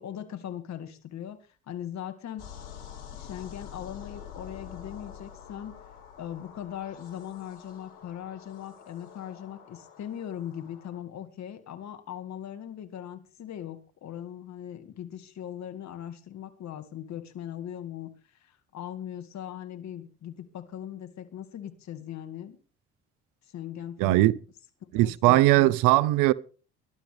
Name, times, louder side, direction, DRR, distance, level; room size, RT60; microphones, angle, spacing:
voice 1, 0.0-2.4 3.1-5.8 6.2-22.6 23.5-24.3 25.0-25.7, left 10 dB, 60° left, 1.9 m, -40 dB
sound 1, 2.4-11.0, left 8 dB, 80° left, 3.0 m, -47 dB
voice 2, 24.0-24.3 24.9-26.3, right 17 dB, 75° right, 0.7 m, -20 dB
20.0 x 12.0 x 3.4 m
hypercardioid pair, 60°, 32 cm